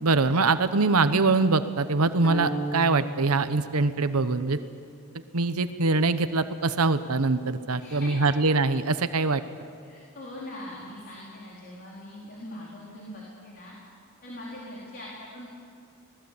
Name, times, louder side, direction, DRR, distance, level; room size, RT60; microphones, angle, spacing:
voice 1, 0.0-4.6 5.3-9.4, right 3 dB, 85° right, 11 dB, 1.0 m, -23 dB
sound 1, 2.2-4.5, right 1 dB, 20° left, 5.1 m, -35 dB
voice 2, 7.8-8.3 9.8-13.8 14.2-15.5, left 1 dB, 45° left, -4 dB, 4.2 m, -41 dB
25.0 x 19.0 x 8.5 m, 2.2 s
head